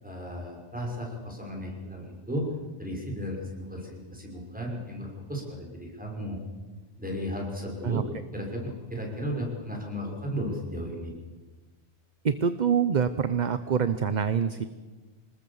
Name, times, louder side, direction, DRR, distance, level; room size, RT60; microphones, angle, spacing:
voice 1, 0.0-2.5 2.8-6.4 7.0-8.0 8.3-11.1, equal, 5° right, 0 dB, 5.8 m, -34 dB
voice 2, 12.2-14.7, right 7 dB, 45° right, 12 dB, 0.8 m, -25 dB
26.0 x 20.5 x 7.2 m, 1.3 s
omnidirectional pair, 1.2 m